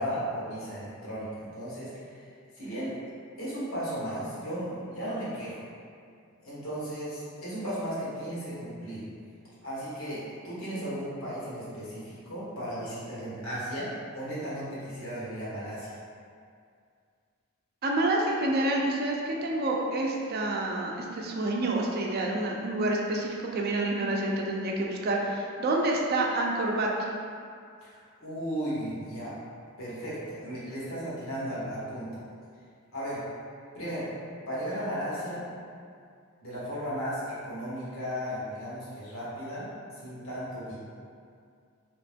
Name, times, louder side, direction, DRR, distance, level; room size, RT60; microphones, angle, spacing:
voice 1, 0.0-2.2 2.5-2.9 3.4-5.6 6.4-9.0 9.6-16.0 27.8-29.3 29.8-32.1 32.9-33.2 33.7-34.1 34.5-35.4 36.4-39.7 40.0-40.8, equal, 90° left, -9 dB, 1.3 m, -35 dB
voice 2, 17.8-27.1, right 2 dB, 50° right, -1 dB, 0.4 m, -28 dB
3.0 x 3.0 x 3.4 m, 2.3 s
head